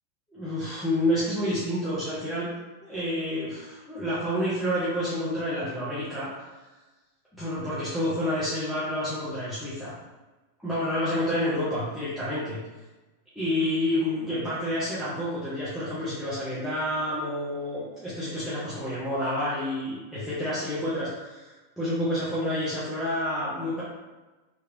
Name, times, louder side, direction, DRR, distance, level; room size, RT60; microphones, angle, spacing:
voice 1, 0.3-2.5 2.8-6.3 7.3-9.9 10.6-12.6 13.3-23.8, left 1 dB, 5° left, -12 dB, 1.0 m, -29 dB
3.1 x 2.5 x 3.0 m, 1.1 s
figure-of-eight pair, 90°, 0 cm